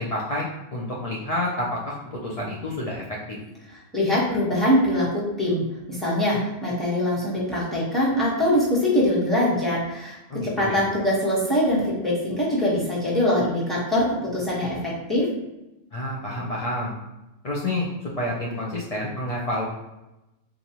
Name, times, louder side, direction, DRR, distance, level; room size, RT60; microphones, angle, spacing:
voice 1, 0.0-3.4 10.3-10.8 15.9-16.9 17.4-19.7, left 1 dB, 70° left, -4 dB, 0.3 m, -29 dB
voice 2, 3.9-5.6 5.9-15.3, left 1 dB, ahead, -7 dB, 1.1 m, -23 dB
3.9 x 2.5 x 2.9 m, 0.96 s
omnidirectional pair, 1.3 m